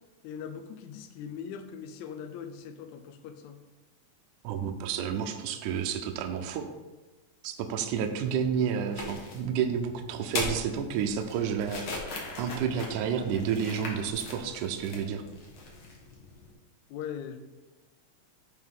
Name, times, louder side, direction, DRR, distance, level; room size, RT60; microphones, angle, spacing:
voice 1, 0.2-3.6 16.9-17.4, left 7 dB, 80° left, 7 dB, 1.7 m, -40 dB
voice 2, 4.4-6.7 7.4-15.2, right 7 dB, 75° right, 5 dB, 1.9 m, -30 dB
sound 1, 8.9-16.5, left 3 dB, 60° left, 1.3 m, -39 dB
9.5 x 4.6 x 3.7 m, 1.2 s
omnidirectional pair, 4.0 m